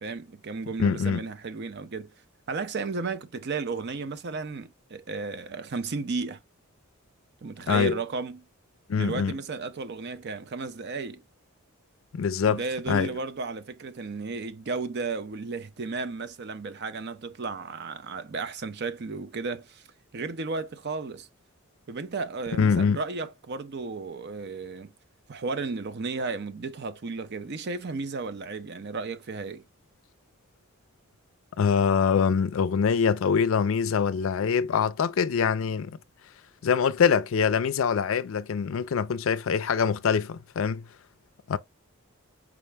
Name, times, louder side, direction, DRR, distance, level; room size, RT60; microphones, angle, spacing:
voice 1, 0.0-2.1 2.5-6.4 7.4-8.4 9.0-11.2 12.4-19.8 20.1-21.3 21.9-24.9 25.3-29.6, right 4 dB, 50° right, 0.5 m, -34 dB
voice 2, 0.8-1.2 7.7-8.0 8.9-9.3 12.1-13.1 22.6-23.0 31.6-36.0 36.6-40.8 41.5-41.6, left 6 dB, 65° left, 0.4 m, -24 dB
4.9 x 2.1 x 3.3 m
head